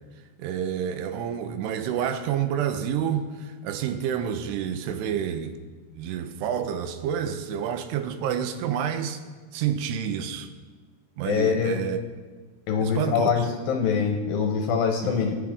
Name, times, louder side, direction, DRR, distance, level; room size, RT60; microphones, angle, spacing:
voice 1, 0.4-5.6 6.0-9.2 9.5-10.5 11.2-12.0 12.8-13.3 15.0-15.3, right 9 dB, 85° right, 2.8 m, -29 dB
voice 2, 11.2-11.8 12.7-15.3, left 6 dB, 75° left, 2.2 m, -24 dB
20.0 x 8.7 x 3.6 m
omnidirectional pair, 4.8 m